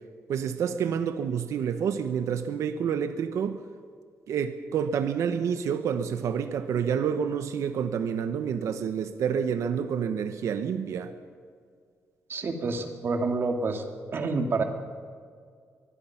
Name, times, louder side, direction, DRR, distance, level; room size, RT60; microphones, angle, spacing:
voice 1, 0.3-3.6 4.3-11.1, right 7 dB, 80° right, 9 dB, 1.1 m, -28 dB
voice 2, 12.3-13.8 14.1-14.6, right 3 dB, 50° right, 5 dB, 2.4 m, -28 dB
24.0 x 21.0 x 5.9 m, 2.1 s
cardioid pair, 130°, 5 cm